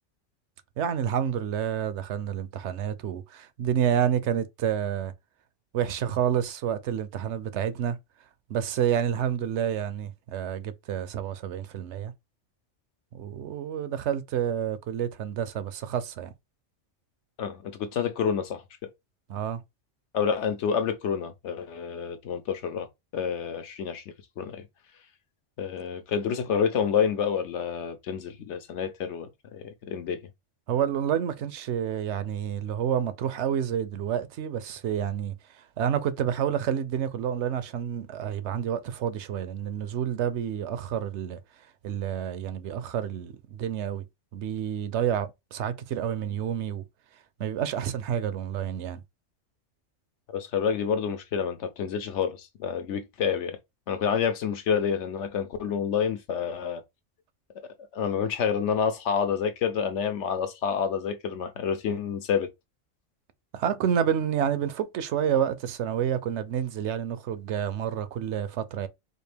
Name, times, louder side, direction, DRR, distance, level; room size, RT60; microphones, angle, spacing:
voice 1, 0.8-5.1 5.7-8.0 8.5-12.1 13.1-16.3 19.3-19.6 30.7-35.4 35.8-41.4 41.8-44.0 44.3-46.8 47.4-49.0 63.5-68.9, right 9 dB, 70° right, 0.9 m, -29 dB
voice 2, 17.4-18.6 20.1-22.9 23.1-24.0 24.4-24.6 25.6-30.2 50.3-53.6 53.9-56.8 57.9-62.5, left 7 dB, 70° left, 0.9 m, -28 dB
4.3 x 2.5 x 3.3 m
omnidirectional pair, 1.3 m